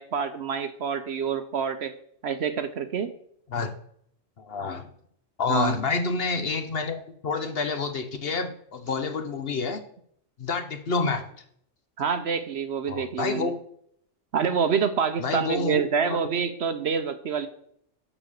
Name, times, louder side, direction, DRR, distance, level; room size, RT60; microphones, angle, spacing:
voice 1, 0.0-1.9 2.2-3.1 5.5-5.7 12.0-13.5 14.3-17.5, right 6 dB, 60° right, 10 dB, 0.9 m, -27 dB
voice 2, 4.4-4.9 5.4-9.8 10.4-11.2 12.9-13.5 15.2-16.2, left 4 dB, 50° left, 8 dB, 1.0 m, -28 dB
7.0 x 5.5 x 6.4 m, 0.67 s
omnidirectional pair, 1.4 m